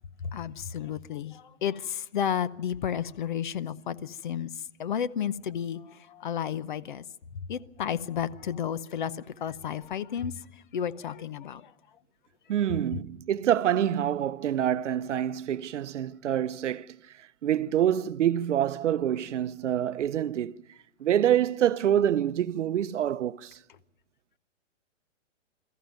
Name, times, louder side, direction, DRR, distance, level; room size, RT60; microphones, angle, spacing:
voice 1, 0.2-7.0 7.3-11.7, left 8 dB, 40° left, 0.7 m, -32 dB
voice 2, 12.5-20.5 21.0-23.6, right 10 dB, 70° right, 0.7 m, -26 dB
22.5 x 14.5 x 9.2 m
hypercardioid pair, 165°, 38 cm